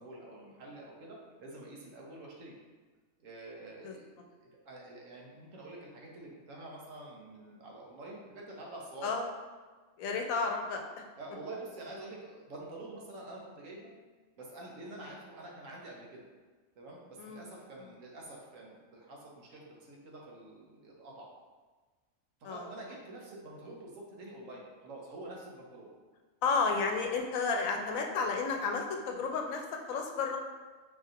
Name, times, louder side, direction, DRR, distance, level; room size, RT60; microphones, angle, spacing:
voice 1, 0.0-2.6 3.2-9.2 11.2-13.9 14.4-16.3 16.8-21.3 22.4-25.9, right 2 dB, 75° right, -3 dB, 1.2 m, -47 dB
voice 2, 10.0-10.8 17.2-17.4 22.4-22.7 26.4-30.4, left 4 dB, 85° left, 2 dB, 1.0 m, -32 dB
5.2 x 2.7 x 2.5 m, 1.4 s
omnidirectional pair, 1.4 m